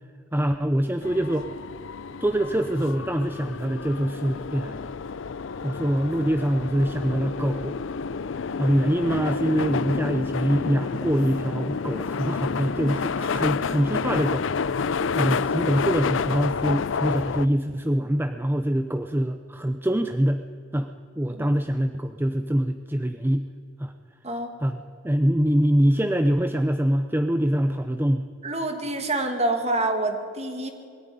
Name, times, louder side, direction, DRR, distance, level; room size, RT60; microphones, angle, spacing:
voice 1, 0.3-1.5 2.2-4.9 5.6-7.7 8.6-20.4 20.7-20.9 21.2-23.4 23.8-23.9 24.6-28.3, equal, 10° right, 7 dB, 0.6 m, -24 dB
sound 1, 1.0-17.5, left 5 dB, 85° left, 0.5 m, -29 dB
voice 2, 28.4-30.7, right 2 dB, 35° right, 5 dB, 2.3 m, -27 dB
21.5 x 13.5 x 9.9 m, 2.3 s
head